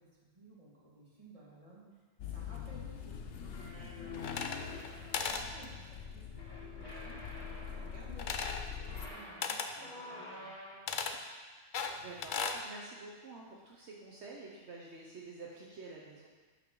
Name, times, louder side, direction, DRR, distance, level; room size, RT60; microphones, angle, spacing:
voice 1, 0.0-6.2 6.6-7.2 7.7-8.5 8.8-10.6 10.9-11.1, right 2 dB, 30° right, -6 dB, 1.9 m, -57 dB
sound 1, 2.2-9.1, left 7 dB, 75° left, 1.0 m, -44 dB
sound 2, 3.5-5.3 6.3-8.1 8.7-11.0, left 2 dB, 20° left, 2.2 m, -49 dB
sound 3, 4.2-4.9 5.1-5.5 8.2-8.7 9.4-9.7 10.9-11.2 11.7-12.6, left 5 dB, 55° left, 0.6 m, -36 dB
voice 2, 12.0-16.3, right 3 dB, 70° right, -3 dB, 1.2 m, -49 dB
8.5 x 6.4 x 3.7 m, 1.4 s
omnidirectional pair, 1.2 m